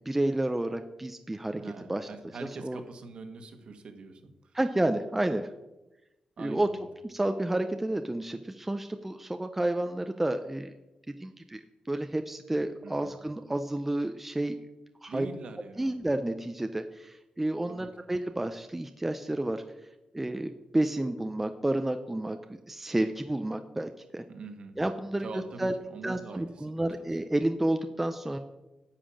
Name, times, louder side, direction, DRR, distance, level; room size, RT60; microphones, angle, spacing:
voice 1, 0.1-1.6 1.9-2.1 2.6-2.8 4.5-5.5 6.4-6.7 7.0-10.7 11.2-11.6 11.9-14.6 15.0-15.3 15.8-19.6 20.1-24.2 24.8-25.7 26.0-28.4, right 1 dB, 10° right, 7 dB, 0.5 m, -30 dB
voice 2, 1.6-4.3 6.4-6.8 12.8-13.1 15.1-16.0 17.7-17.9 24.3-24.8 25.2-27.2, right 4 dB, 55° right, 6 dB, 1.4 m, -43 dB
10.0 x 5.7 x 8.4 m, 1.0 s
wide cardioid pair, 170°, 2 cm